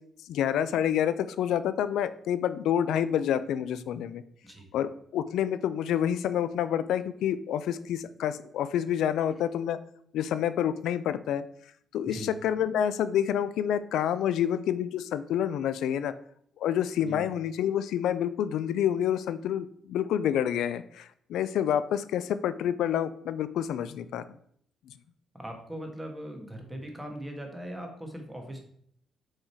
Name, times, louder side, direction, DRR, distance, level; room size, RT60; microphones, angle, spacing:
voice 1, 0.3-4.2 4.7-9.8 10.1-11.4 11.9-16.1 16.6-24.2, left 10 dB, 80° left, 14 dB, 0.4 m, -28 dB
voice 2, 25.3-28.6, equal, 10° right, 2 dB, 1.7 m, -40 dB
6.5 x 3.9 x 4.5 m, 0.66 s
cardioid pair, 90°, 0 cm